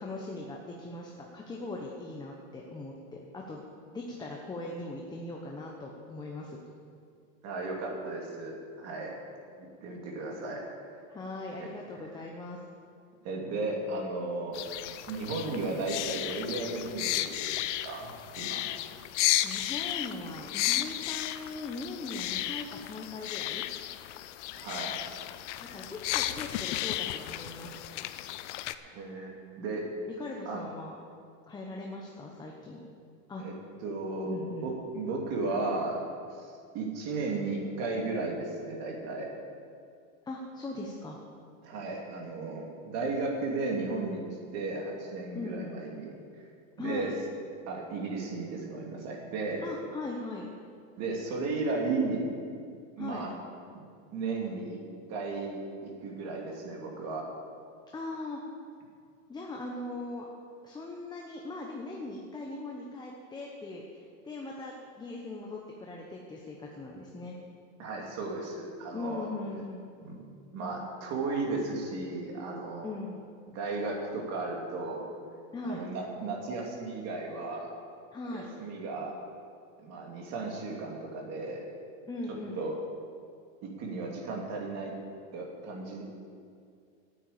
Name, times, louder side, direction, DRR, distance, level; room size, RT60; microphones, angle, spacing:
voice 1, 0.0-6.6 11.1-12.6 19.4-23.6 25.6-27.8 30.2-31.0 31.5-32.8 33.3-33.4 34.3-34.7 40.3-41.2 45.3-45.8 46.8-47.1 49.6-50.5 53.0-53.2 57.9-58.4 59.3-60.3 60.6-63.8 64.2-67.4 68.9-69.8 72.8-73.2 75.5-75.9 78.1-78.5 82.1-82.6, left 2 dB, 10° left, -1 dB, 0.9 m, -40 dB
voice 2, 7.4-9.2 9.6-10.6 11.6-11.7 13.2-14.6 15.1-18.6 24.5-25.1 28.8-29.8 30.5-30.6 33.4-33.5 33.8-36.0 36.3-39.3 41.6-44.2 44.5-46.1 46.8-47.1 47.7-49.7 51.0-52.3 53.0-53.3 54.1-54.8 55.1-57.3 67.8-69.3 70.0-70.2 70.5-72.9 73.5-75.1 75.6-77.7 78.3-79.2 79.8-81.7 82.5-82.8 83.6-84.9 85.3-86.0, right 3 dB, 40° right, 0 dB, 2.7 m, -35 dB
sound 1, 14.5-28.7, left 14 dB, 60° left, 0.7 m, -34 dB
9.2 x 9.2 x 8.4 m, 2.3 s
supercardioid pair, 145°, 39 cm